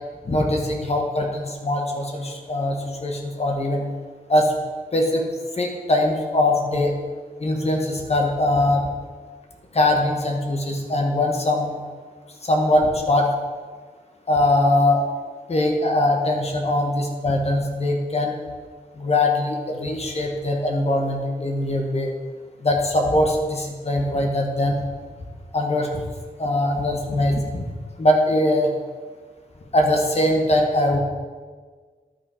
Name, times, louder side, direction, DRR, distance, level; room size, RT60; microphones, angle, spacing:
voice 1, 0.3-3.8 4.3-4.5 4.9-5.2 5.6-6.9 7.4-8.9 9.7-11.7 12.4-13.3 14.3-15.0 15.5-18.3 19.0-22.1 22.6-24.8 25.5-26.0 26.4-27.7 28.0-28.7 29.7-31.0, left 1 dB, 45° left, 2 dB, 1.3 m, -21 dB
12.0 x 5.6 x 4.9 m, 1.5 s
wide cardioid pair, 90°, 15 cm